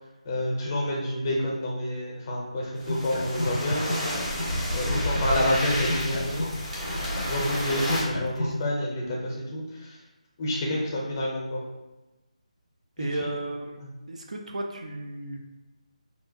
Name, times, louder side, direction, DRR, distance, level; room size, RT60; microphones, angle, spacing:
voice 1, 0.2-3.8 4.7-6.6 7.3-10.0 10.4-11.6 13.0-13.1, left 1 dB, 30° left, -3 dB, 0.6 m, -28 dB
sound 1, 2.8-4.6 4.8-8.6, left 1 dB, 90° left, 0.4 m, -32 dB
sound 2, 2.8-8.0, equal, 85° right, 1.2 m, -31 dB
voice 2, 13.0-13.8 14.1-15.4, right 2 dB, 65° right, 2 dB, 0.4 m, -34 dB
2.7 x 2.1 x 2.6 m, 1.1 s
figure-of-eight pair, 155°, 4 cm